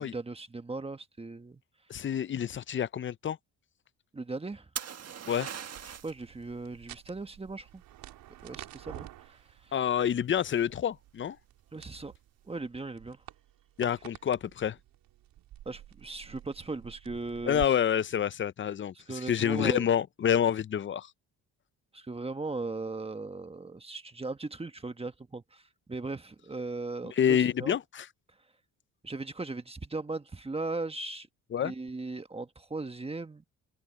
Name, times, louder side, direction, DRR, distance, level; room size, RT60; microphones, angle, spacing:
voice 1, 0.0-1.6 4.1-4.7 6.0-7.8 8.4-9.9 11.7-12.1 12.4-13.2 15.6-17.8 18.9-19.9 21.9-27.8 29.0-31.3 31.6-33.4, right 3 dB, 15° right, 1.3 m, -38 dB
voice 2, 1.9-3.4 5.3-5.5 9.7-11.4 13.8-14.8 17.5-18.9 19.3-21.1 27.2-28.1 31.5-31.7, left 9 dB, 35° left, 0.6 m, -28 dB
sound 1, 4.8-6.2 9.9-10.3, right 8 dB, 45° right, 1.6 m, -39 dB
sound 2, 5.8-17.7, right 13 dB, 85° right, 3.7 m, -50 dB
open air
cardioid pair, 95°, 34 cm